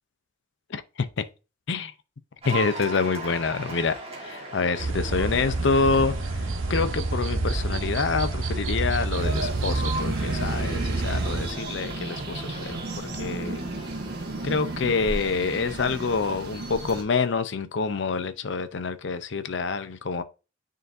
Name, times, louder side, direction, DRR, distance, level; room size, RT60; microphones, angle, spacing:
voice 1, 2.4-6.4 6.7-13.6 14.4-20.2, left 4 dB, 65° left, 0.6 m, -27 dB
Cheering / Applause, 2.4-15.8, right 2 dB, 30° right, 1.6 m, -39 dB
sound 1, 4.8-11.5, right 2 dB, 90° right, 0.7 m, -28 dB
sound 2, 9.1-17.0, right 2 dB, 55° right, 1.4 m, -34 dB
9.3 x 3.9 x 2.6 m
head